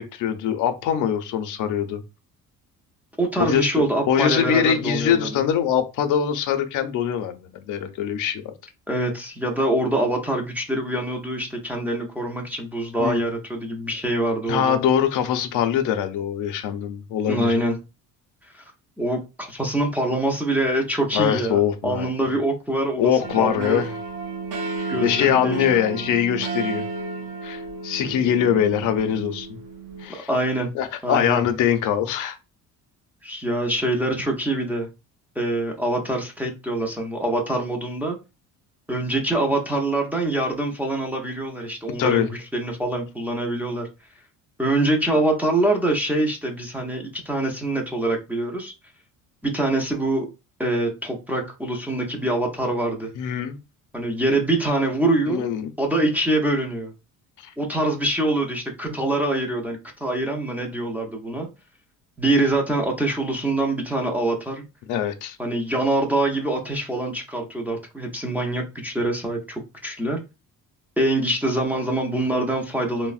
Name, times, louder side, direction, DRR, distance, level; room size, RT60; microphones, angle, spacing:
voice 1, 0.0-2.0 3.4-8.5 13.0-13.2 14.5-17.5 21.1-22.1 23.0-23.9 24.8-26.9 27.4-29.6 30.0-30.3 30.7-32.4 42.0-42.3 52.1-52.2 53.2-53.6 55.3-55.7 57.4-57.5 58.9-59.0 64.9-65.4 72.2-72.5, left 9 dB, 65° left, 0.5 m, -23 dB
voice 2, 3.2-5.4 8.9-14.8 17.3-17.8 18.5-18.6 19.0-23.8 24.9-26.1 30.3-30.7 31.0-31.4 33.2-34.9 35.4-38.2 38.9-43.9 44.6-48.7 49.4-50.3 50.6-53.1 53.9-55.4 55.8-56.9 57.6-61.5 62.2-64.7 65.4-70.2 71.0-73.1, right 1 dB, 5° right, 0.4 m, -24 dB
sound 1, 23.2-30.1, right 4 dB, 75° right, 0.7 m, -33 dB
3.3 x 2.0 x 2.4 m
cardioid pair, 130°, 33 cm